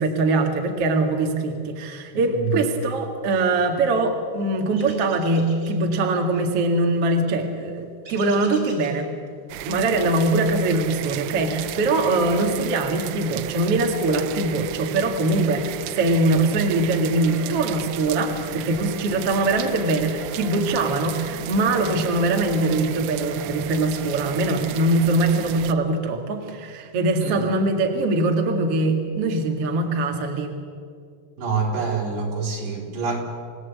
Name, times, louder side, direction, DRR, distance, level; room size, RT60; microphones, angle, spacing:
voice 1, 0.0-9.1 9.6-30.5, right 2 dB, 45° right, 3 dB, 2.1 m, -22 dB
voice 2, 2.1-2.6 27.2-27.5 31.4-33.2, right 5 dB, 65° right, -1 dB, 6.2 m, -26 dB
sound 1, 4.8-5.8 8.0-9.0, right 2 dB, 20° right, 3.9 m, -44 dB
sound 2, 9.5-25.7, right 14 dB, 85° right, 3.1 m, -35 dB
sound 3, 16.8-24.9, equal, 45° left, 5.0 m, -42 dB
28.0 x 18.0 x 8.4 m, 2.3 s
omnidirectional pair, 5.4 m